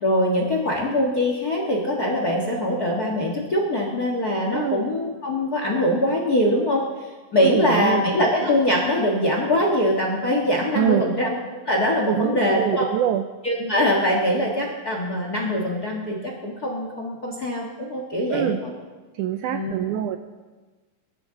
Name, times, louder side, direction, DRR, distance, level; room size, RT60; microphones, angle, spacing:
voice 1, 0.0-6.8 7.3-11.3 11.6-12.9 13.4-18.7 19.5-19.7, left 1 dB, 45° left, 0 dB, 1.2 m, -23 dB
voice 2, 4.5-4.8 7.4-8.1 8.4-8.5 10.8-11.1 12.1-13.3 18.3-18.6 19.1-20.2, right 11 dB, 85° right, 7 dB, 1.8 m, -24 dB
22.5 x 12.5 x 3.8 m, 1.3 s
omnidirectional pair, 4.0 m